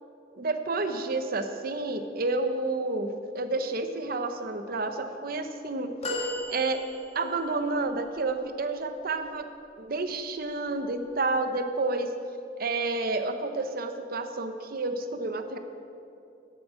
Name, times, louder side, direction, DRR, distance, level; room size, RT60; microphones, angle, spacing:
voice 1, 0.4-6.8 7.1-9.5 9.8-12.1 12.6-15.6, right 3 dB, 55° right, 8 dB, 0.8 m, -30 dB
sound 1, 6.0-7.4 8.2-8.3, left 1 dB, 35° left, 1.7 m, -34 dB
8.5 x 7.2 x 8.5 m, 2.6 s
head